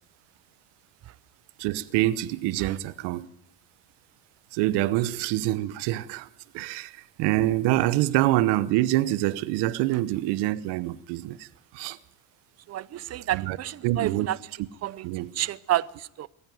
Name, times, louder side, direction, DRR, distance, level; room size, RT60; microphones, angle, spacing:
voice 1, 1.6-3.3 4.5-6.3 6.5-11.5 11.7-12.0 13.3-13.6 13.8-14.3 15.0-15.3, right 16 dB, 85° right, 1.1 m, -26 dB
voice 2, 12.7-14.4 14.8-15.1 15.3-16.3, right 13 dB, 40° right, 0.7 m, -30 dB
22.0 x 14.5 x 9.3 m
cardioid pair, 130°, 39 cm